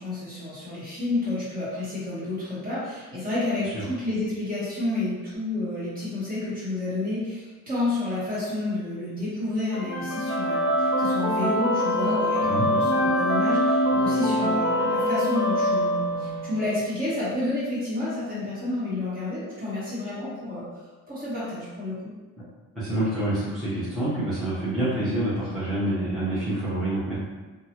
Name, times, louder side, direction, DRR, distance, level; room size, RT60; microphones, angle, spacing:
voice 1, 0.0-20.7 21.1-22.1, left 2 dB, 25° right, -10 dB, 1.3 m, -30 dB
sound 1, 9.7-16.7, equal, 85° right, 0.8 m, -24 dB
voice 2, 22.7-27.2, right 1 dB, ahead, -14 dB, 0.8 m, -27 dB
2.7 x 2.4 x 2.9 m, 1.2 s
cardioid pair, 150°, 34 cm